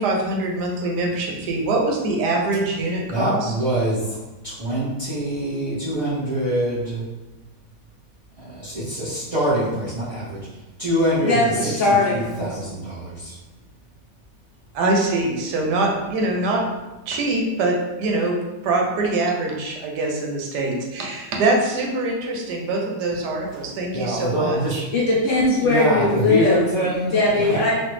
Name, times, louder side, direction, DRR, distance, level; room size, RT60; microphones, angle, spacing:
voice 1, 0.0-3.5 14.7-16.7 17.1-24.8, right 2 dB, 85° right, 0 dB, 1.2 m, -23 dB
voice 2, 3.1-4.2 4.4-7.0 8.4-13.4 23.9-24.8 25.6-27.6, right 1 dB, 60° right, -11 dB, 0.3 m, -24 dB
voice 3, 11.2-12.3 24.9-26.7 27.1-27.8, left 2 dB, 60° left, -6 dB, 0.9 m, -19 dB
3.2 x 2.4 x 3.1 m, 1.1 s
omnidirectional pair, 1.8 m